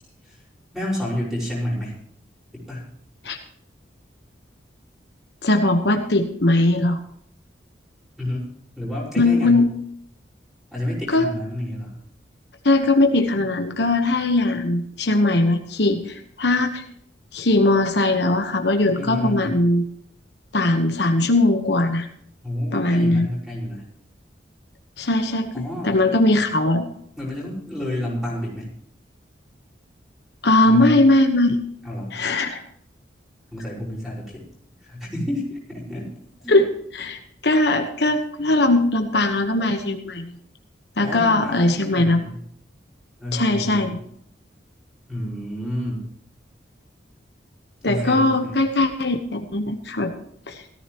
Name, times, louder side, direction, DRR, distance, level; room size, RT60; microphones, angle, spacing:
voice 1, 0.7-1.9 2.5-2.9 8.2-8.5 8.8-9.7 10.7-12.0 19.0-19.6 22.4-23.8 25.5-26.2 27.2-28.7 30.6-31.0 31.8-32.2 33.5-34.4 34.8-36.6 41.0-42.4 43.2-43.9 45.1-46.1 47.8-48.7, left 1 dB, ahead, -5 dB, 5.3 m, -30 dB
voice 2, 5.4-7.0 9.2-9.7 11.1-11.3 12.6-16.8 17.3-19.8 20.5-22.1 22.7-23.3 25.0-26.9 30.4-31.6 32.1-32.6 36.5-40.3 41.0-42.2 43.3-44.0 47.8-50.1 50.5-50.6, left 2 dB, 65° left, 5 dB, 1.2 m, -20 dB
17.5 x 14.0 x 3.1 m, 0.68 s
head